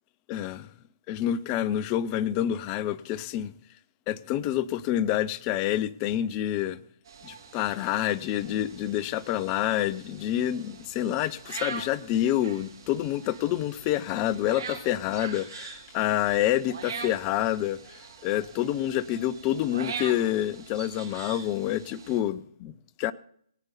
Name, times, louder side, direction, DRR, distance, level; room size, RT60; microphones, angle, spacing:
voice 1, 0.3-0.7 1.1-3.5 4.1-6.8 7.2-23.1, left 12 dB, 25° left, 0.5 m, -28 dB
sound 1, 7.1-22.2, right 5 dB, 50° right, 3.1 m, -43 dB
18.0 x 9.6 x 4.0 m
figure-of-eight pair, 140°, 3 cm